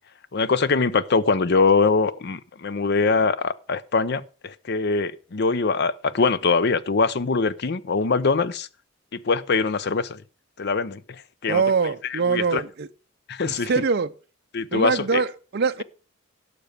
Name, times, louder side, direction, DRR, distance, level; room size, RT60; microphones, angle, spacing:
voice 1, 0.3-8.7 9.1-10.2 10.6-11.0 11.4-11.6 12.1-12.6 13.3-13.7 14.5-15.2, left 4 dB, 55° left, 0.6 m, -23 dB
voice 2, 11.5-12.9 13.5-14.1 14.7-15.8, right 5 dB, 50° right, 0.5 m, -23 dB
12.0 x 6.8 x 6.5 m
head